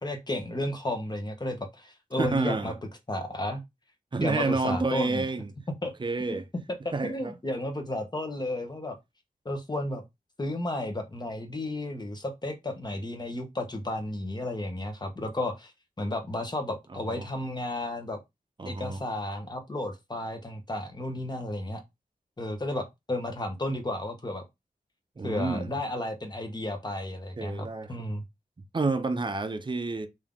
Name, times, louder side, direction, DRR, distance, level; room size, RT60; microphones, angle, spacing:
voice 1, 0.0-2.7 3.1-3.6 4.2-5.3 5.8-5.9 6.3-6.4 7.0-9.0 9.4-10.0 10.4-15.7 16.0-18.2 18.6-21.8 22.4-24.4 25.2-28.2, left 1 dB, 30° left, 1.0 m, -33 dB
voice 2, 2.2-2.7 4.1-5.5 6.0-6.5 6.9-7.3 16.9-17.3 18.6-19.0 25.2-25.7 27.4-27.9 28.7-30.1, right 3 dB, 30° right, 0.5 m, -29 dB
3.6 x 2.7 x 3.6 m
wide cardioid pair, 115°, 15 cm